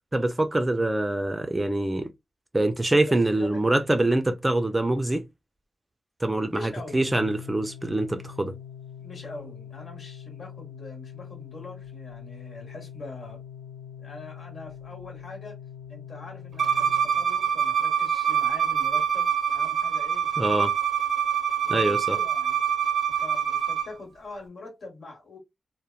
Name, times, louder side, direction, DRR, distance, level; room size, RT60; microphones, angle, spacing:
voice 1, 0.1-2.1 2.5-5.2 6.2-8.5 20.4-20.7 21.7-22.2, right 1 dB, 20° right, 0.4 m, -24 dB
voice 2, 3.1-3.6 6.5-7.0 9.0-13.4 14.0-15.6 15.9-20.7 21.6-22.6 23.1-25.4, left 2 dB, 65° left, 1.3 m, -43 dB
Organ, 6.8-17.7, left 8 dB, 90° left, 0.4 m, -43 dB
Bowed string instrument, 16.6-23.9, right 8 dB, 75° right, 0.5 m, -25 dB
2.9 x 2.1 x 2.4 m
wide cardioid pair, 90°, 0 cm